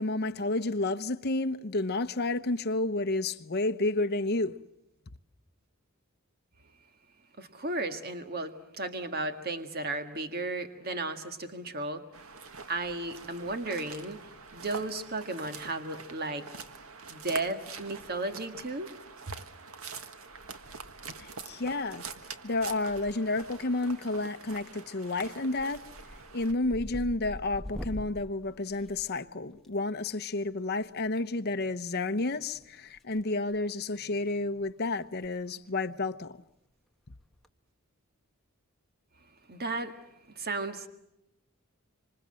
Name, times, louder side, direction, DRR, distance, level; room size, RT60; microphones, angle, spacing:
voice 1, 0.0-4.5 21.2-22.0 22.4-25.8 26.3-36.4, left 2 dB, 50° left, 0.9 m, -31 dB
voice 2, 7.4-12.0 12.7-14.2 14.5-16.5 17.1-18.9 39.5-40.0 40.4-40.9, right 2 dB, 45° right, 1.8 m, -34 dB
sound 1, 12.1-26.5, right 4 dB, 75° right, 1.6 m, -45 dB
sound 2, 22.9-23.5 23.8-24.3 24.7-24.9 25.3-29.7 31.0-31.2 32.4-33.2 33.5-33.7 34.3-34.4 34.6-34.7 35.1-35.3 35.5-35.6 37.2-37.5, left 1 dB, ahead, 1.4 m, -43 dB
26.5 x 26.0 x 7.7 m
head